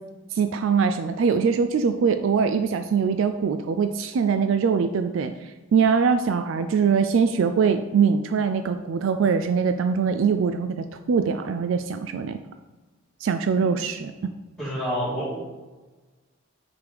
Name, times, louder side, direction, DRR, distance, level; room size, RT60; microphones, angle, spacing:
voice 1, 0.3-12.4 13.2-14.1, right 6 dB, 65° right, 8 dB, 0.3 m, -22 dB
voice 2, 14.6-15.4, equal, 5° left, -14 dB, 2.0 m, -27 dB
5.0 x 4.8 x 5.1 m, 1.2 s
head